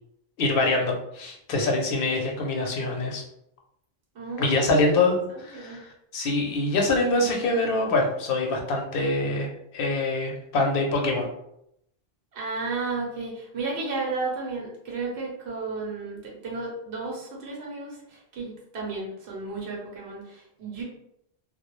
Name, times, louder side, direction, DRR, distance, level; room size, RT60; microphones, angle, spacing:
voice 1, 0.4-3.2 4.4-11.3, left 2 dB, 65° left, 1 dB, 0.7 m, -25 dB
voice 2, 4.1-4.9 5.3-5.8 12.3-20.8, right 3 dB, 90° right, -3 dB, 1.0 m, -33 dB
2.2 x 2.0 x 2.9 m, 0.78 s
omnidirectional pair, 1.0 m